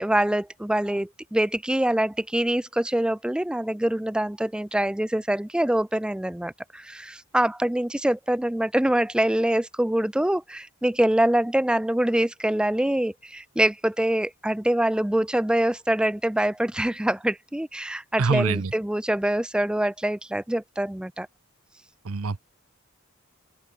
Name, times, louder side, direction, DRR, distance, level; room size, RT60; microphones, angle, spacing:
voice 1, 0.0-21.3, right 1 dB, 5° right, 0.3 m, -24 dB
voice 2, 18.2-18.7 22.1-22.4, right 4 dB, 75° right, 0.8 m, -24 dB
open air
head